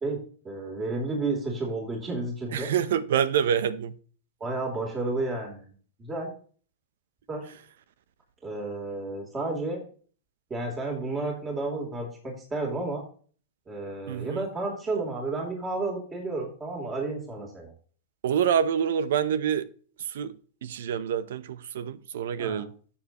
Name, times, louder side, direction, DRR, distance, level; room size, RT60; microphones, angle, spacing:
voice 1, 0.0-2.7 4.4-5.7 6.0-6.3 7.3-7.5 8.4-9.8 10.5-13.0 13.7-17.7 22.4-22.6, right 2 dB, 20° right, 3.4 m, -31 dB
voice 2, 2.5-3.9 14.1-14.5 18.2-19.7 20.0-20.3 20.6-22.7, right 8 dB, 75° right, 0.8 m, -26 dB
12.5 x 7.3 x 3.1 m
hypercardioid pair, 115°, 0 cm